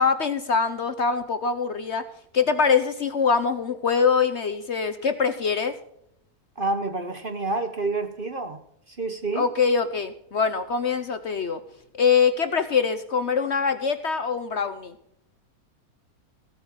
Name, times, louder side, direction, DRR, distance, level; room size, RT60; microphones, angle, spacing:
voice 1, 0.0-2.1 2.3-5.8 9.3-11.6 12.0-14.9, left 5 dB, 50° left, 10 dB, 0.9 m, -23 dB
voice 2, 6.6-8.6 8.9-9.5, right 3 dB, 40° right, 8 dB, 1.0 m, -28 dB
15.5 x 8.4 x 5.7 m, 0.73 s
omnidirectional pair, 1.7 m